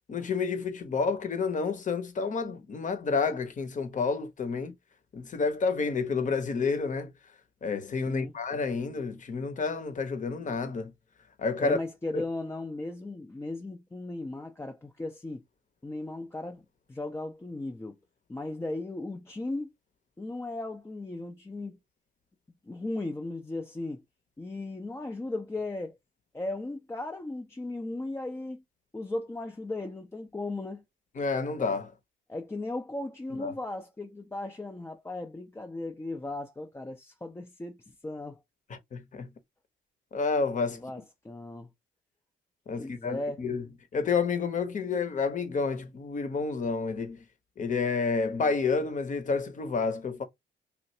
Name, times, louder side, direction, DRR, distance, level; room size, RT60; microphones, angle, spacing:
voice 1, 0.1-4.7 5.1-7.1 7.6-10.9 11.4-11.8 12.1-12.2 31.2-31.9 33.4-33.5 38.7-39.3 40.1-40.9 42.7-43.6 43.9-47.2 47.6-50.2, left 4 dB, 40° left, 0.8 m, -29 dB
voice 2, 11.6-15.4 15.8-16.6 16.9-18.0 18.3-19.7 20.2-21.8 22.7-24.0 24.4-26.0 26.3-28.6 28.9-30.8 32.3-38.4 40.8-41.7 42.7-43.4, left 2 dB, 15° left, 0.5 m, -36 dB
3.1 x 2.5 x 2.7 m
cardioid pair, 90°, 20 cm